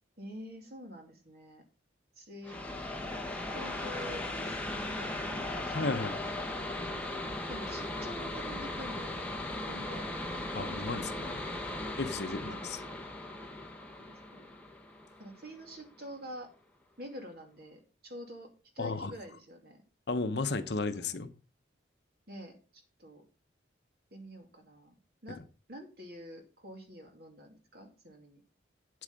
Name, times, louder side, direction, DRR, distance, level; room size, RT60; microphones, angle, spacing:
voice 1, 0.2-1.6 2.1-2.6 3.5-6.2 7.5-9.2 9.7-11.1 12.4-12.8 14.1-14.5 15.2-16.5 17.0-18.5 18.7-19.8 21.0-21.2 22.3-22.6 23.0-23.2 24.1-25.0 25.2-25.4 25.7-28.4, equal, 55° right, 3 dB, 2.6 m, -47 dB
sound 1, 2.4-15.8, left 1 dB, 5° left, 1.3 m, -38 dB
voice 2, 5.7-6.3 10.5-11.4 12.0-12.8 18.8-19.1 20.1-21.3, left 3 dB, 60° left, 9 dB, 0.9 m, -34 dB
8.6 x 8.0 x 5.3 m, 0.36 s
head